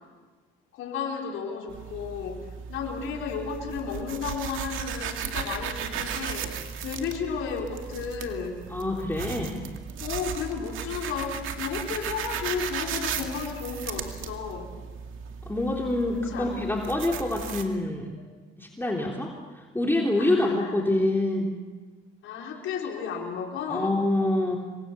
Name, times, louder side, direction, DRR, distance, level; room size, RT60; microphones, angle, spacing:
voice 1, 0.7-8.6 10.0-14.7 16.3-16.7 20.2-20.7 22.2-24.0, left 6 dB, 90° left, 0 dB, 4.5 m, -33 dB
sound 1, 1.7-17.6, right 7 dB, 85° right, 2.3 m, -36 dB
voice 2, 8.7-9.6 15.4-18.1 18.6-21.6 23.7-24.6, left 1 dB, 10° left, -1 dB, 3.4 m, -26 dB
28.0 x 23.5 x 7.0 m, 1.4 s
cardioid pair, 90°, 20 cm